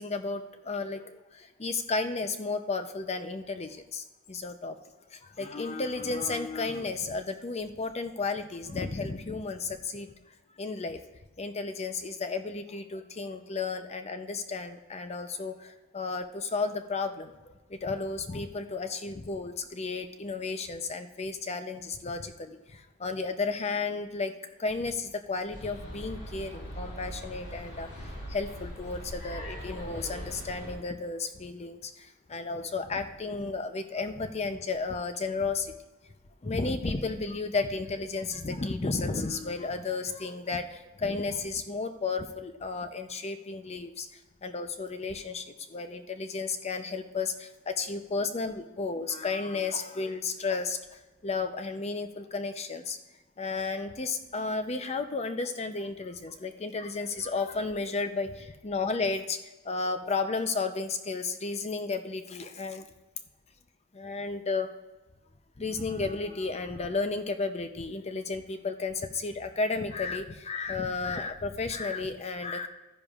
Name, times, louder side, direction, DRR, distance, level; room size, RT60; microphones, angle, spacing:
voice 1, 0.0-4.7 5.1-10.1 10.6-11.0 11.4-17.3 17.7-24.3 24.6-35.7 36.4-53.0 53.4-62.8 63.9-64.7 65.6-72.7, left 4 dB, 30° left, 8 dB, 0.6 m, -33 dB
sound 1, 25.5-30.8, equal, 55° left, 2.8 m, -41 dB
14.0 x 10.5 x 2.4 m, 1.1 s
head